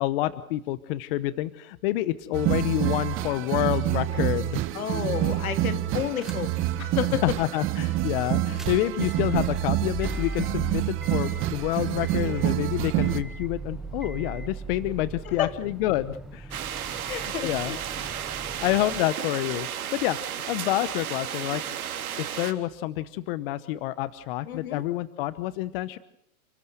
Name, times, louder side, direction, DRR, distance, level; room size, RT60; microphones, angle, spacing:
voice 1, 0.0-4.6 7.2-16.5 17.1-17.8 18.0-18.2 18.6-20.2 20.5-21.6 22.2-26.0, left 15 dB, 40° left, 15 dB, 1.0 m, -28 dB
sound 1, 2.3-13.2, right 15 dB, 30° right, 1.6 m, -27 dB
voice 2, 4.7-6.5 6.8-7.2 15.3-15.5 17.1-17.8 24.5-24.8, left 10 dB, 75° left, 10 dB, 2.5 m, -30 dB
sound 2, 6.2-6.7 7.1-7.2 8.4-19.0, right 2 dB, ahead, 1.2 m, -39 dB
sound 3, 16.5-22.5, right 9 dB, 80° right, 3.6 m, -33 dB
30.0 x 15.0 x 8.0 m, 0.71 s
hypercardioid pair, 145°, 43 cm